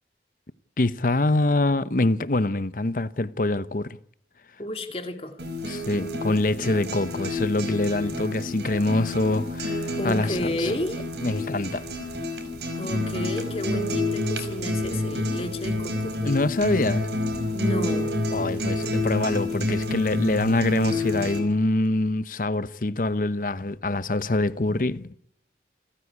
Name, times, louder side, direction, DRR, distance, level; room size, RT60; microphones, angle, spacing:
voice 1, 0.8-4.0 5.6-10.7 11.2-11.8 16.2-17.1 18.3-25.2, left 2 dB, 50° left, 0.8 m, -25 dB
voice 2, 4.6-5.4 10.0-11.0 12.8-16.2 17.5-18.1, left 1 dB, 35° left, 2.5 m, -31 dB
sound 1, 5.4-21.4, left 2 dB, 75° right, 5.2 m, -29 dB
28.5 x 14.5 x 9.7 m
head